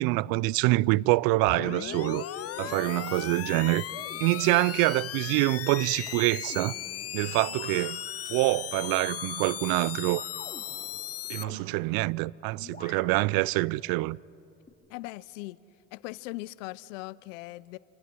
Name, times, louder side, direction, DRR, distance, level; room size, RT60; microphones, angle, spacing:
voice 1, 0.0-2.2 2.6-3.9 4.2-6.7 7.1-8.0 8.3-10.2 11.3-14.2, right 22 dB, 70° right, 0.5 m, -26 dB
sound 1, 1.4-11.4, left 12 dB, 40° left, 0.7 m, -37 dB
sound 2, 1.5-1.9 2.4-3.3 3.8-4.6 5.8-12.2 12.6-13.6 14.7-14.8, left 3 dB, 20° left, 4.3 m, -46 dB
voice 2, 14.9-15.6 15.9-17.8, left 20 dB, 80° left, 0.7 m, -39 dB
27.5 x 26.0 x 6.2 m
hypercardioid pair, 60°, 38 cm